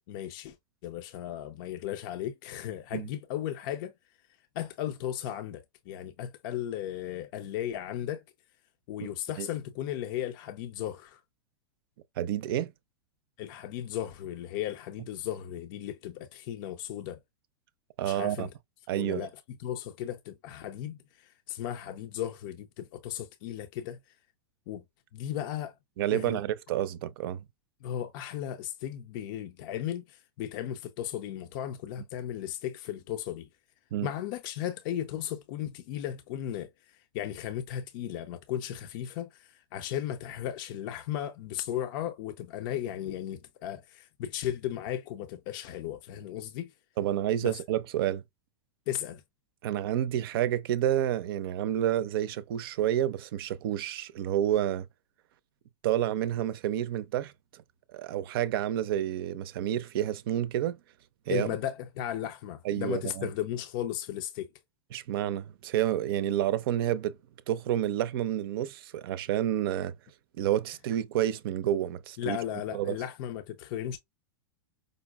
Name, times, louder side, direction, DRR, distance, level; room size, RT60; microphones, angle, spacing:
voice 1, 0.1-0.6 0.8-3.9 4.6-8.2 8.9-11.2 13.4-17.2 18.0-18.5 19.0-19.3 19.6-24.0 24.7-24.8 25.1-25.7 26.1-26.4 27.8-33.5 34.0-46.7 47.4-47.5 48.9-49.2 61.3-64.5 72.2-74.0, left 11 dB, 55° left, 0.5 m, -36 dB
voice 2, 12.2-12.7 18.0-18.5 18.9-19.3 26.0-27.4 33.9-34.1 47.0-48.2 49.6-54.9 55.8-57.6 57.9-60.8 61.3-61.6 62.6-63.3 64.9-67.2 67.5-69.9 70.4-72.4 72.7-73.0, right 11 dB, 65° right, 0.5 m, -29 dB
5.1 x 2.1 x 2.2 m
hypercardioid pair, 115°, 13 cm